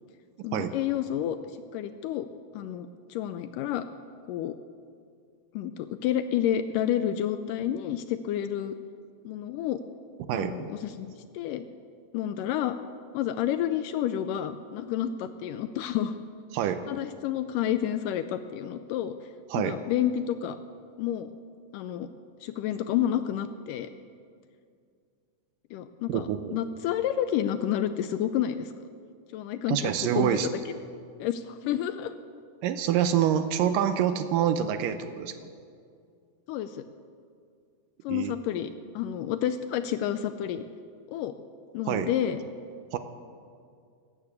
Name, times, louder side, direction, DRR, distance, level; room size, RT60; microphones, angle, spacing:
voice 1, 0.4-1.4 1.7-2.3 2.5-3.9 4.3-4.5 5.6-8.8 9.2-9.8 10.3-11.6 12.1-12.8 13.1-16.2 16.9-19.2 19.6-20.6 21.0-21.3 21.7-22.1 22.4-23.9 25.7-28.7 29.3-30.4 31.2-32.1 36.5-36.9 38.0-38.7 39.0-40.6 41.1-41.3 41.7-42.4, left 10 dB, 80° left, 10 dB, 2.0 m, -30 dB
voice 2, 10.3-10.7 16.5-16.8 19.5-19.8 26.1-26.6 29.7-30.5 32.6-35.5 38.1-38.4 41.9-42.1 42.9-43.0, right 10 dB, 80° right, 9 dB, 2.2 m, -26 dB
13.5 x 12.5 x 8.3 m, 2.2 s
omnidirectional pair, 4.1 m